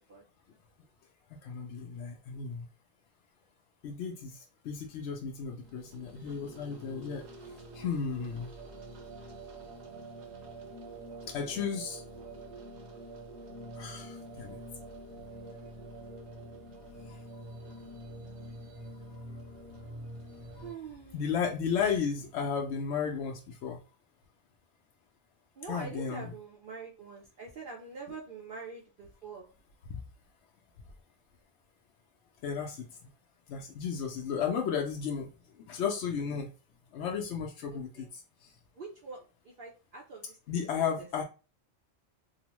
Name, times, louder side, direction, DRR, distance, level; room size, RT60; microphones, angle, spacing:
voice 1, 1.3-2.7 3.8-7.2 7.7-8.5 11.3-12.0 13.7-14.6 16.9-17.2 20.6-20.7 21.1-23.8 25.7-26.3 32.4-33.0 33.5-35.3 35.6-36.5 36.9-38.5 40.5-41.2, left 6 dB, 80° left, 0 dB, 0.9 m, -34 dB
sound 1, 5.5-20.7, right 1 dB, 75° right, 1.1 m, -46 dB
voice 2, 20.5-21.4 25.6-29.5 37.7-38.1 38.8-41.2, right 4 dB, 55° right, -1 dB, 0.7 m, -45 dB
2.9 x 2.1 x 2.9 m, 0.33 s
omnidirectional pair, 1.1 m